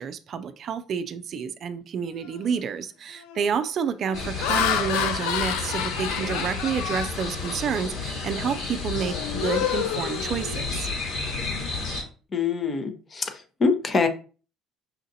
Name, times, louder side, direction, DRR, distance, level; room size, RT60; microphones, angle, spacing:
voice 1, 0.0-10.9, right 7 dB, 55° right, 0.4 m, -29 dB
Laughter, 2.3-2.6 3.2-3.5 4.1-7.9 8.3-8.6 8.9-10.9, left 9 dB, 80° left, 0.4 m, -30 dB
sound 1, 4.1-12.0, left 3 dB, 65° left, 2.2 m, -32 dB
voice 2, 12.3-14.1, left 4 dB, 35° left, 0.8 m, -24 dB
5.6 x 2.5 x 2.7 m
supercardioid pair, 75°, 0 cm